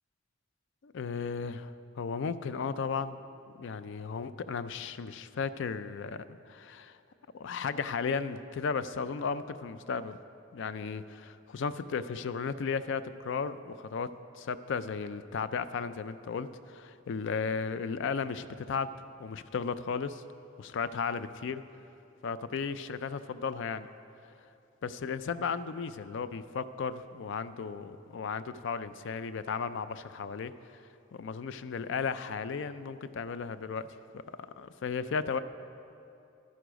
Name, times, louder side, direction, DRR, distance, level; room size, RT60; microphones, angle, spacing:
voice 1, 0.8-3.2 3.5-7.0 7.3-10.2 10.5-18.9 19.2-20.2 20.6-21.6 22.2-23.9 24.8-30.5 31.1-35.4, left 5 dB, 70° left, 13 dB, 0.4 m, -35 dB
11.5 x 9.5 x 5.1 m, 2.7 s
head